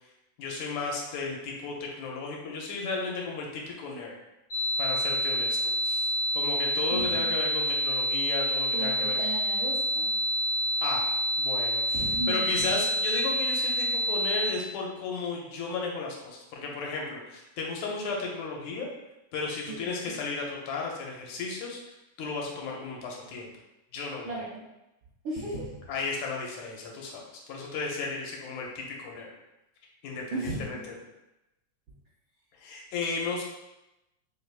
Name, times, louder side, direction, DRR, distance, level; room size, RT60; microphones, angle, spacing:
voice 1, 0.4-4.2 4.8-9.2 10.8-11.1 11.4-11.8 12.3-18.9 19.3-21.8 22.2-23.5 23.9-24.5 25.9-29.3 30.0-30.9 32.6-33.4, left 4 dB, 80° left, -1 dB, 1.9 m, -34 dB
sound 1, 4.5-14.5, equal, 55° left, 1.3 m, -28 dB
voice 2, 8.7-10.1 11.9-12.4 19.6-20.2 24.2-24.6 25.2-25.8 30.3-30.7, right 2 dB, 75° right, -7 dB, 1.1 m, -35 dB
4.5 x 3.3 x 2.4 m, 0.94 s
omnidirectional pair, 3.4 m